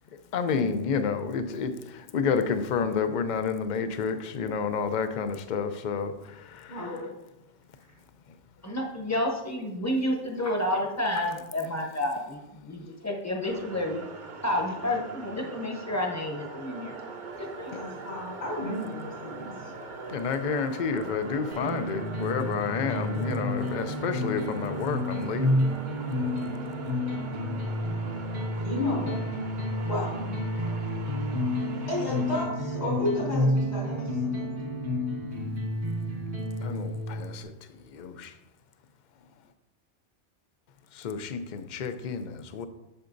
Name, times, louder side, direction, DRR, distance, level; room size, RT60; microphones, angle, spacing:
voice 1, 0.3-7.0 17.7-17.8 20.1-25.6 36.6-38.3 40.9-42.7, left 5 dB, 50° left, 9 dB, 0.6 m, -30 dB
voice 2, 6.7-7.1 17.7-19.7 28.6-29.2 29.9-30.3 31.1-31.2 31.9-34.4, left 1 dB, 70° left, -5 dB, 3.3 m, -32 dB
voice 3, 8.6-14.0 14.4-17.0 17.4-17.7, left 1 dB, 15° left, 2 dB, 0.9 m, -30 dB
sound 1, 13.4-32.5, right 3 dB, 45° right, 0.8 m, -42 dB
sound 2, 21.5-37.4, left 1 dB, 70° right, 1.6 m, -30 dB
8.1 x 6.7 x 2.6 m, 0.93 s
omnidirectional pair, 1.2 m